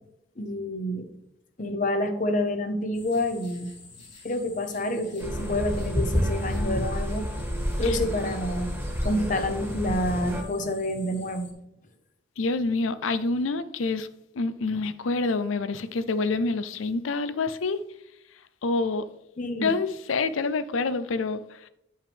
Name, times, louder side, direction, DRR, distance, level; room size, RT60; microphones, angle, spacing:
voice 1, 0.4-1.1 1.6-3.7 4.2-7.3 7.8-8.7 9.0-11.5 19.4-19.7, left 1 dB, 40° left, 0.8 m, -28 dB
sound 1, 2.9-11.5, left 4 dB, 60° left, 2.5 m, -49 dB
sound 2, 5.2-10.4, equal, 10° right, 1.4 m, -29 dB
voice 2, 12.4-14.1 14.4-17.8 18.6-19.1 19.6-21.7, left 3 dB, 85° left, 0.5 m, -27 dB
11.0 x 5.5 x 3.5 m
head